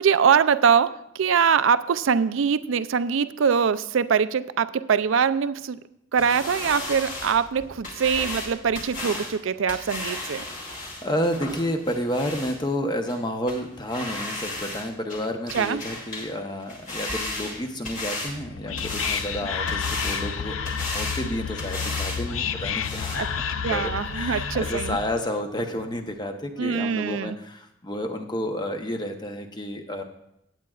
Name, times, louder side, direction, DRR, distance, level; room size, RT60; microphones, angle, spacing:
voice 1, 0.0-5.8 6.1-10.4 15.5-15.8 23.2-23.3 23.6-25.0 26.6-27.4, right 6 dB, 80° right, 14 dB, 0.4 m, -23 dB
sound 1, 6.2-12.6 13.1-13.2 13.5-13.6 13.9-14.8 15.1-16.3 16.6-18.3 18.8-19.3 19.7-20.2 20.6-21.2 21.6-22.2 22.5-22.6 22.8-23.2, left 2 dB, 40° left, 2.5 m, -34 dB
voice 2, 10.4-30.0, equal, 20° left, 5 dB, 0.9 m, -31 dB
Whispering, 18.3-25.2, left 6 dB, 90° left, 0.5 m, -30 dB
16.5 x 8.8 x 2.4 m, 0.83 s
head